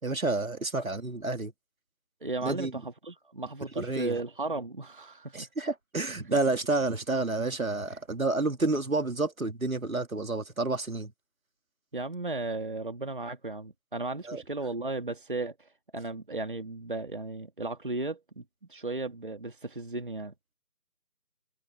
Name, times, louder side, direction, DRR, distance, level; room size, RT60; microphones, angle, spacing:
voice 1, 0.0-1.5 2.4-2.7 3.8-4.2 5.3-11.1 14.3-14.4, right 2 dB, 65° right, 2.9 m, -29 dB
voice 2, 2.2-5.5 6.3-6.4 11.9-18.4 18.7-20.3, right 2 dB, 35° right, 1.8 m, -35 dB
figure-of-eight pair, 175°, 45 cm